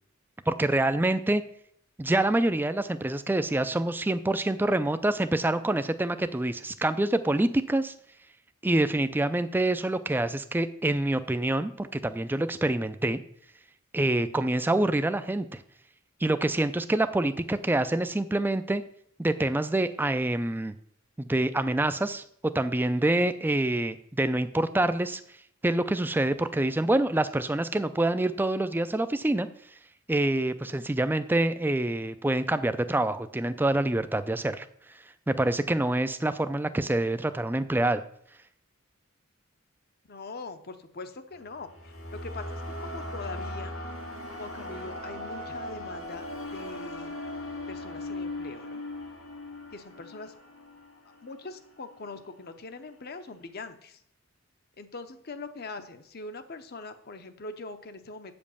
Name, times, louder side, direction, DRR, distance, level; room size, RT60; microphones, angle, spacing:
voice 1, 0.5-1.4 2.0-7.9 8.6-13.2 13.9-15.6 16.2-18.8 19.2-20.7 21.2-25.2 25.6-29.5 30.1-34.7 35.3-38.0, right 1 dB, 10° right, 11 dB, 0.4 m, -26 dB
voice 2, 40.1-43.7 44.4-46.3 46.5-47.1 47.7-48.8 49.7-50.3 51.2-54.0 54.8-58.3, left 3 dB, 50° left, 9 dB, 0.8 m, -42 dB
sound 1, 41.3-51.5, left 1 dB, 70° left, 2.6 m, -39 dB
8.2 x 5.2 x 6.9 m, 0.68 s
head